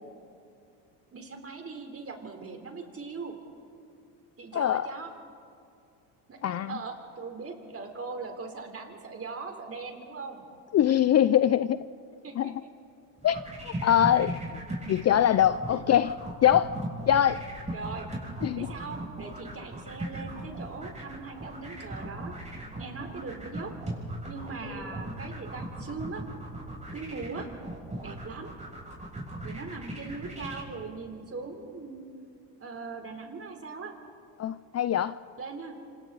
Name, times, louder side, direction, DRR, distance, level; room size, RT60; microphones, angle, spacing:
voice 1, 1.1-3.4 4.4-5.1 6.3-10.4 12.2-12.7 15.7-15.8 17.7-18.1 18.5-22.4 22.8-23.7 24.3-26.2 26.9-27.5 28.0-28.5 29.4-32.1 32.6-33.9 35.4-35.7, right 4 dB, 30° right, 4 dB, 3.7 m, -40 dB
voice 2, 4.5-4.9 6.4-6.8 10.7-11.8 12.4-12.5 13.2-14.6 14.9-16.8 17.1-17.4 18.4-18.7 34.4-35.1, left 10 dB, 35° left, 15 dB, 0.5 m, -23 dB
sound 1, 13.2-30.6, right 1 dB, 15° right, 7.2 m, -38 dB
26.5 x 26.5 x 4.1 m, 2.5 s
supercardioid pair, 85°, 44 cm